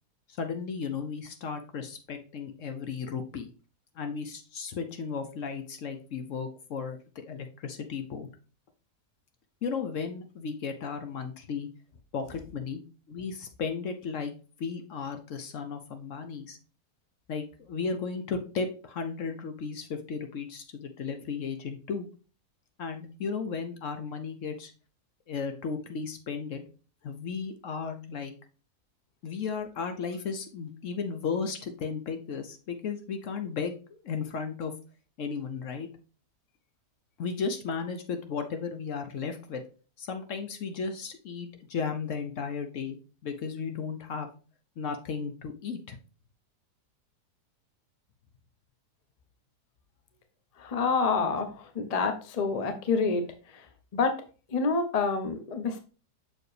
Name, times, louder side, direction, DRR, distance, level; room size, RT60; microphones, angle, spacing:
voice 1, 0.3-3.5 4.0-8.3 9.6-11.7 12.1-12.8 13.1-14.3 14.6-16.6 17.3-22.1 22.8-24.7 25.3-26.6 27.0-28.3 29.2-34.7 35.2-35.9 37.2-39.6 40.0-44.3 44.8-46.0, left 5 dB, 60° left, 7 dB, 0.9 m, -35 dB
voice 2, 50.6-53.2 53.5-53.7 53.9-54.1 54.5-55.8, left 4 dB, 45° left, 7 dB, 0.5 m, -27 dB
6.4 x 4.6 x 3.3 m, 0.36 s
omnidirectional pair, 1.8 m